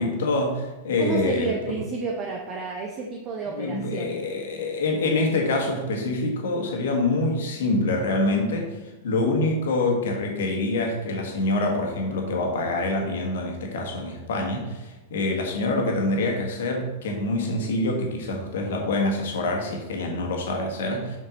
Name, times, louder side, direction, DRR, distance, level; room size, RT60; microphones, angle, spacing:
voice 1, 0.0-1.7 3.5-8.8 9.0-21.2, left 2 dB, 60° left, 1 dB, 1.7 m, -26 dB
voice 2, 1.0-4.2, right 4 dB, 35° right, 0 dB, 0.9 m, -31 dB
6.5 x 6.4 x 4.0 m, 1.1 s
figure-of-eight pair, 95°, 0 cm